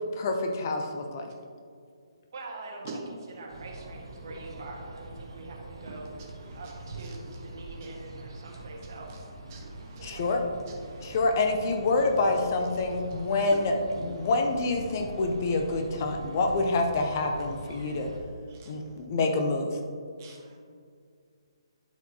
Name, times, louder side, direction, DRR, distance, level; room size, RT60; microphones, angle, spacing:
voice 1, 0.2-1.3 10.0-10.4 11.0-13.7 14.0-18.1 18.7-19.8, left 3 dB, 35° left, 3 dB, 0.7 m, -27 dB
voice 2, 2.3-3.0 3.3-6.1 6.5-9.1 10.0-10.4, right 3 dB, 50° right, -1 dB, 1.5 m, -44 dB
sound 1, 3.5-18.2, right 2 dB, 75° right, 1.4 m, -43 dB
voice 3, 9.5-10.2 10.8-11.2 13.1-13.2 14.0-14.1 18.5-18.7 20.2-20.6, right 4 dB, 30° right, -1 dB, 1.4 m, -46 dB
11.5 x 4.6 x 2.8 m, 2.2 s
figure-of-eight pair, 135°, 3 cm